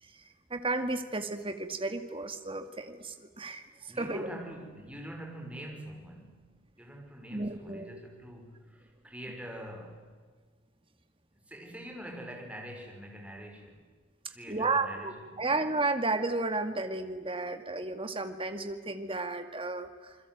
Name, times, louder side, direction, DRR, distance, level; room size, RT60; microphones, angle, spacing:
voice 1, 0.0-4.3 7.3-8.0 14.5-20.2, right 3 dB, 30° right, 8 dB, 2.2 m, -33 dB
voice 2, 3.9-10.1 11.5-13.8 14.3-15.6, equal, 5° right, 1 dB, 5.9 m, -45 dB
28.5 x 21.5 x 9.4 m, 1.5 s
head